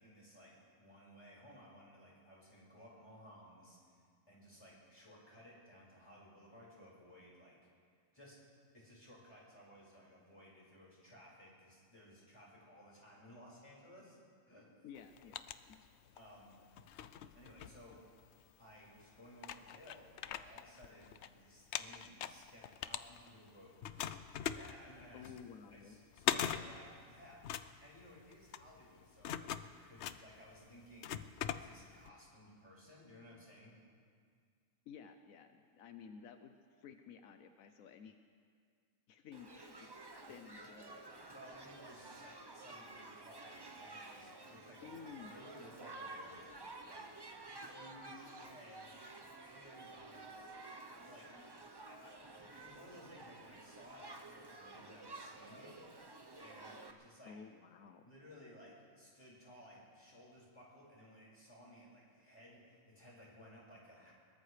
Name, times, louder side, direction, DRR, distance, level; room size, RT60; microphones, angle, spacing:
voice 1, 0.0-7.6 8.1-8.4 8.7-14.2 14.4-14.9 16.1-16.5 17.3-18.0 18.6-23.9 24.5-25.3 25.7-29.5 29.8-31.1 31.5-33.7 41.3-45.0 45.3-48.9 49.3-50.5 50.9-51.4 51.9-55.8 56.4-57.4 58.0-64.1, equal, 20° left, -6 dB, 5.0 m, -58 dB
voice 2, 14.8-15.3 15.7-15.8 25.1-26.0 34.9-36.5 36.8-38.2 39.1-41.3 44.8-45.3 57.3-58.1, left 7 dB, 85° left, 7 dB, 1.1 m, -54 dB
sound 1, 15.0-16.3 16.7-18.4 19.0-19.1 19.4-21.3 21.6-23.5 23.8-32.1, left 10 dB, 65° left, 0.8 m, -42 dB
Shout / Human group actions, 39.3-56.9, right 2 dB, 20° right, 0.7 m, -52 dB
22.0 x 19.0 x 3.3 m, 2.1 s
omnidirectional pair, 1.4 m